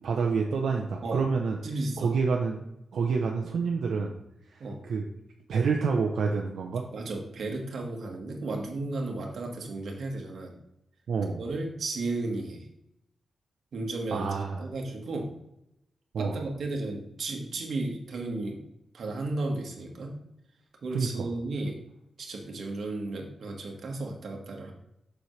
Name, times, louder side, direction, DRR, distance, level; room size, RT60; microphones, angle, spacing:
voice 1, 0.0-1.6 2.0-2.7 2.9-4.1 4.5-5.1 5.5-6.8 11.1-11.4 14.1-14.6 16.1-16.4 20.9-21.3, right 5 dB, 85° right, 0 dB, 0.8 m, -28 dB
voice 2, 1.6-2.1 4.6-4.8 6.9-10.5 11.4-12.7 13.7-15.3 16.2-18.6 18.9-20.2 20.8-21.8 22.2-24.7, right 2 dB, 65° right, 1 dB, 1.6 m, -34 dB
7.1 x 6.4 x 3.2 m, 0.82 s
wide cardioid pair, 140°, 0 cm